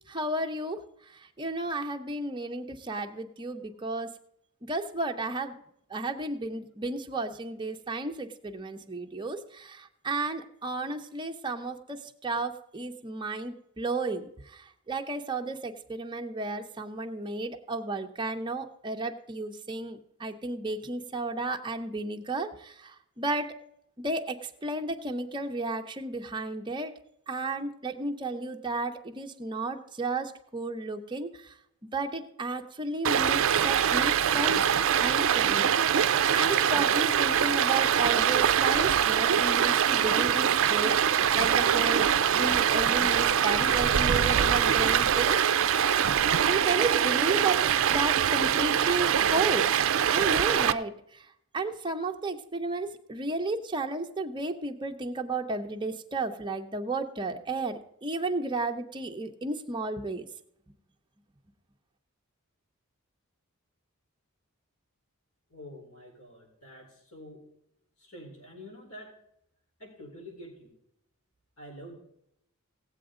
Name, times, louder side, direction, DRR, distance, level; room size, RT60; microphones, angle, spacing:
voice 1, 0.1-0.8 1.1-4.1 4.7-5.6 5.9-23.5 24.0-26.9 27.3-31.5 31.9-34.7 35.0-35.7 36.3-45.9 46.4-49.8 50.1-51.3 51.5-60.2, right 2 dB, 20° right, 4 dB, 0.8 m, -33 dB
Stream, 33.0-50.7, right 8 dB, 60° right, 0.5 m, -24 dB
voice 2, 65.5-67.4 68.0-69.1 69.8-70.7 71.6-72.0, equal, 75° left, -1 dB, 4.1 m, -47 dB
17.5 x 7.9 x 3.8 m, 0.75 s
head